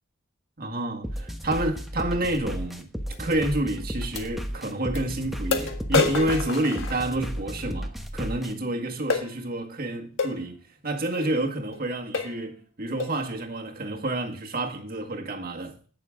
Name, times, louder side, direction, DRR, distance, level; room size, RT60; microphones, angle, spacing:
voice 1, 0.6-2.9 3.2-15.8, right 1 dB, 45° right, 1.8 m, -29 dB
sound 1, 1.0-8.5, equal, ahead, 1.0 m, -34 dB
sound 2, 3.1-3.2 4.2-4.3 5.0-5.1 5.5-7.5 9.1-9.3 10.2-10.4 11.2-11.3 11.7-11.8 12.1-12.4 13.0-13.2, left 4 dB, 60° left, 1.7 m, -28 dB
17.5 x 6.9 x 3.7 m
head